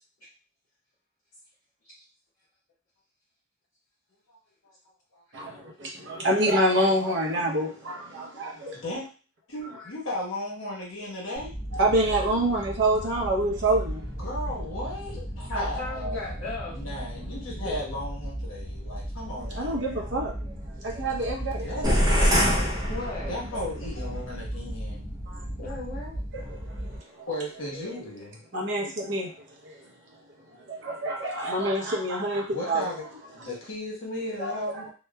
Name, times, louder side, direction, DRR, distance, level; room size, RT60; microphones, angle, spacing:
voice 1, 5.3-8.8 11.7-14.0 19.5-21.7 25.3-25.4 26.3-27.3 28.5-29.9 30.5-32.9 34.4-34.6, right 1 dB, 60° right, -1 dB, 0.7 m, -27 dB
voice 2, 8.7-9.0 9.5-11.5 14.2-16.4 16.7-19.8 21.5-22.7 23.3-25.1 27.3-28.4 32.5-33.1 33.3-34.9, left 1 dB, 80° left, -3 dB, 1.1 m, -35 dB
sound 1, 11.4-27.0, equal, 15° left, 0.8 m, -36 dB
voice 3, 15.5-16.8 17.5-17.8 22.9-23.3 25.6-26.2, left 2 dB, 60° left, -7 dB, 0.8 m, -36 dB
sound 2, 21.8-23.7, equal, 20° right, 0.5 m, -23 dB
2.9 x 2.1 x 2.2 m, 0.36 s
head